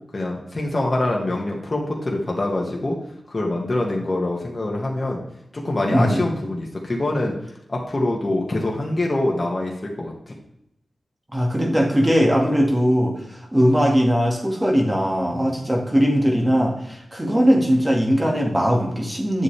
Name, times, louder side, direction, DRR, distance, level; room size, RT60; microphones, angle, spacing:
voice 1, 0.1-3.0 3.3-5.2 5.5-7.3 7.7-10.3, left 2 dB, 40° left, -2 dB, 1.8 m, -24 dB
voice 2, 5.9-6.2 11.3-19.4, equal, 20° right, 0 dB, 2.2 m, -20 dB
9.5 x 7.2 x 3.4 m, 0.81 s
cardioid pair, 60°, 0 cm